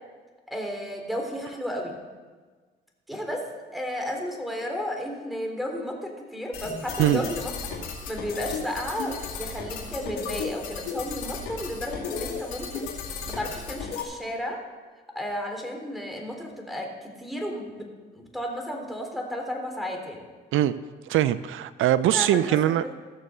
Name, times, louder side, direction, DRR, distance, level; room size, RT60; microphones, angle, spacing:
voice 1, 0.5-2.0 3.1-3.4 3.7-7.5 8.1-12.9 13.3-14.6 15.2-20.3 22.1-22.8, equal, ahead, 2 dB, 3.6 m, -33 dB
sound 1, 6.5-14.0, left 5 dB, 85° left, 2.2 m, -34 dB
voice 2, 21.1-22.9, right 12 dB, 70° right, 15 dB, 0.5 m, -22 dB
16.0 x 6.8 x 6.6 m, 1.4 s
supercardioid pair, 55°, 21 cm